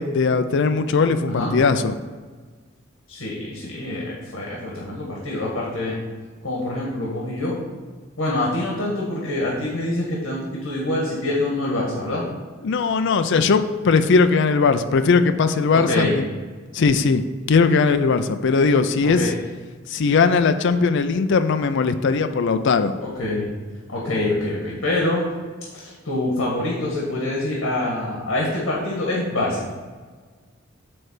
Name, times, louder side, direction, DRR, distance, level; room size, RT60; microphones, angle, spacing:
voice 1, 0.0-1.9 12.6-16.2 16.7-19.2 19.9-22.9, left 4 dB, 65° left, 9 dB, 0.4 m, -19 dB
voice 2, 3.1-6.0 6.4-7.6 8.2-12.3 15.7-16.1 19.0-19.3 23.0-23.5 23.9-25.2 25.7-29.7, left 1 dB, 80° left, -4 dB, 1.7 m, -25 dB
8.6 x 3.3 x 6.5 m, 1.5 s
head